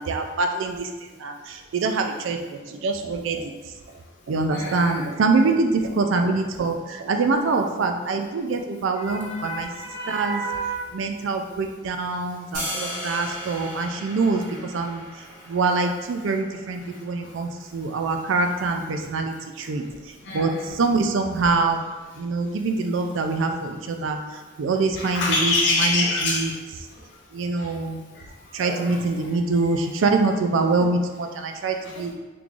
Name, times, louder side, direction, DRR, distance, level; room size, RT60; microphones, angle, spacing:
voice 1, 0.0-3.5 3.9-4.0 4.3-9.7 10.1-10.4 10.9-21.8 22.2-26.5 27.3-28.0 28.5-32.1, right 3 dB, 65° right, 5 dB, 0.3 m, -25 dB
voice 2, 4.5-5.1 9.0-10.9 19.0-19.1 20.2-20.8 22.9-23.1 25.0-26.5 27.6-27.7 28.6-29.4 31.8-32.1, left 2 dB, 55° left, -5 dB, 0.7 m, -27 dB
sound 1, 12.5-18.6, equal, 45° right, 1.3 m, -37 dB
3.7 x 3.0 x 2.5 m, 1.3 s
head